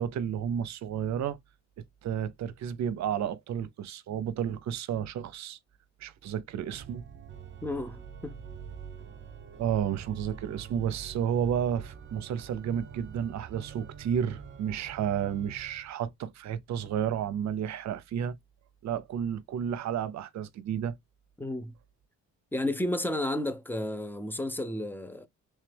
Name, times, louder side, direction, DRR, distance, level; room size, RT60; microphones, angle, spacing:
voice 1, 0.0-1.4 2.0-5.6 6.0-7.0 9.6-18.4 18.8-20.9, right 9 dB, 65° right, 0.7 m, -31 dB
Organ, 6.7-15.9, right 7 dB, 40° right, 0.9 m, -45 dB
voice 2, 7.6-8.3 21.4-21.7 22.5-25.3, left 1 dB, 5° left, 0.7 m, -32 dB
3.3 x 3.2 x 3.3 m
cardioid pair, 90°, 30 cm